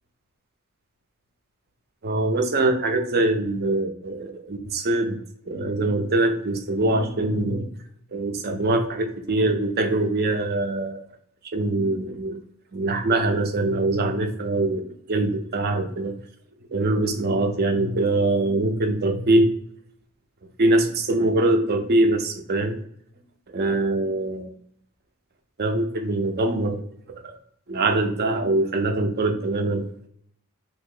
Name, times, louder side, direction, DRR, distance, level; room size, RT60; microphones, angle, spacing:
voice 1, 2.0-5.2 5.5-7.7 8.1-11.0 11.5-12.4 12.7-16.1 16.7-19.5 20.6-22.8 23.5-24.5 25.6-26.8 27.1-27.4 27.7-29.8, right 2 dB, 45° right, 5 dB, 0.6 m, -23 dB
3.0 x 2.8 x 3.7 m, 0.66 s
head